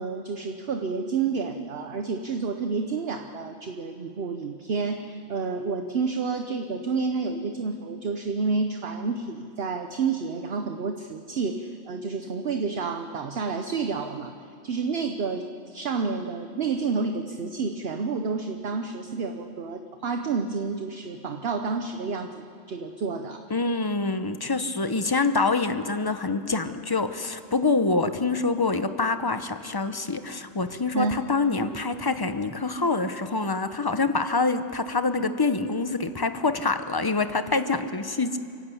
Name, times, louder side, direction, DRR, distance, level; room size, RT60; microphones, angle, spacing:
voice 1, 0.0-14.3 14.6-23.5 30.9-31.2, right 4 dB, 50° right, 6 dB, 1.0 m, -29 dB
voice 2, 23.5-38.4, left 3 dB, 25° left, 10 dB, 0.6 m, -26 dB
30.0 x 11.0 x 8.5 m, 2.6 s
omnidirectional pair, 1.4 m